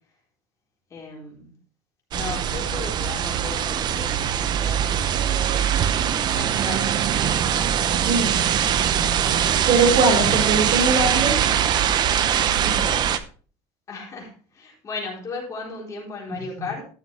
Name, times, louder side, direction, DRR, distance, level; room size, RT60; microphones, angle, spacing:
voice 1, 0.9-1.5 2.1-5.2 6.3-7.5 9.6-9.9 13.9-16.9, left 4 dB, 25° left, -2 dB, 4.0 m, -36 dB
sound 1, 2.1-13.2, right 9 dB, 35° right, 0.7 m, -22 dB
voice 2, 2.1-2.5 8.0-8.4 9.7-11.4 12.6-13.0 16.3-16.4, right 3 dB, 65° right, -2 dB, 4.3 m, -22 dB
13.5 x 7.0 x 3.4 m, 0.40 s
cardioid pair, 155°, 12 cm